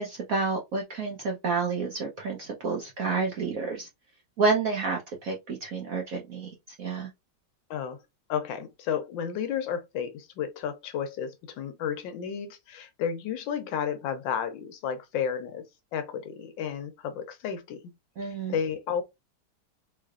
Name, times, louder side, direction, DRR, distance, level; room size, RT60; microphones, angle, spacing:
voice 1, 0.0-3.9 4.4-6.5 6.8-7.1 18.2-18.6, right 4 dB, 65° right, 0.8 m, -29 dB
voice 2, 8.3-17.8 18.2-19.0, left 8 dB, 75° left, 1.2 m, -32 dB
3.8 x 3.2 x 2.3 m
omnidirectional pair, 2.3 m